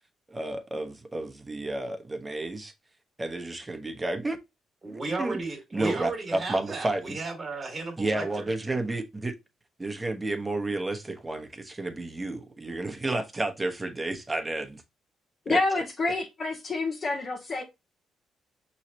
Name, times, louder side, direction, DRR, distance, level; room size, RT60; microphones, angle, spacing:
voice 1, 0.3-2.7 3.2-4.4 5.2-5.4 5.7-6.1 6.5-7.0 8.0-9.3 9.8-14.8 15.5-15.6, right 2 dB, 20° right, 1.0 m, -31 dB
voice 2, 4.8-8.5, right 3 dB, 35° right, 1.6 m, -34 dB
voice 3, 15.5-17.6, left 3 dB, 45° left, 0.9 m, -28 dB
5.5 x 3.1 x 2.8 m
cardioid pair, 90°, 0 cm